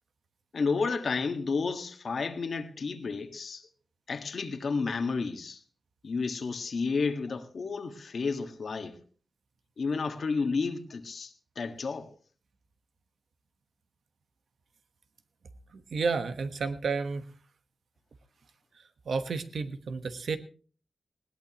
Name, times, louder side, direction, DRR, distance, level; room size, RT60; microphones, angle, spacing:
voice 1, 0.5-3.7 4.1-5.6 6.0-9.0 9.8-12.1, left 4 dB, 65° left, 1.6 m, -31 dB
voice 2, 15.7-17.2 19.0-20.4, right 4 dB, 85° right, 1.2 m, -31 dB
20.0 x 17.5 x 3.0 m
wide cardioid pair, 135°, 0 cm